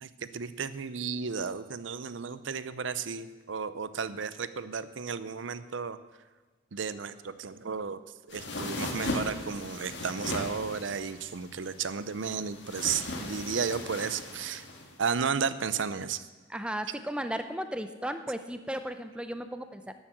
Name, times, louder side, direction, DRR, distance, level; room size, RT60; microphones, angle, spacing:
voice 1, 0.0-6.0 6.7-8.0 8.3-14.6 15.0-16.2, right 6 dB, 90° right, 14 dB, 0.6 m, -33 dB
sound 1, 8.3-14.9, left 2 dB, 65° left, 2.2 m, -38 dB
voice 2, 16.5-19.9, right 1 dB, 5° right, 9 dB, 0.6 m, -35 dB
12.0 x 8.3 x 7.7 m, 1.3 s
head